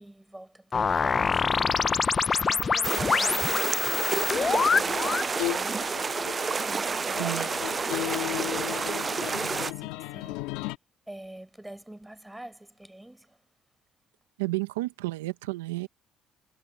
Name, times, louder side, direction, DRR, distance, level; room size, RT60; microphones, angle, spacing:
voice 1, 0.0-1.7 2.4-7.5 7.8-10.7 11.1-13.4, right 1 dB, 10° right, 7.0 m, -46 dB
sound 1, 0.7-5.3, left 5 dB, 40° left, 0.8 m, -25 dB
sound 2, 2.8-9.7, right 5 dB, 35° right, 0.4 m, -29 dB
sound 3, 3.3-10.8, left 21 dB, 80° left, 2.5 m, -36 dB
voice 2, 7.2-7.5 14.4-15.9, right 21 dB, 90° right, 1.3 m, -31 dB
hypercardioid pair, 60°, 0 cm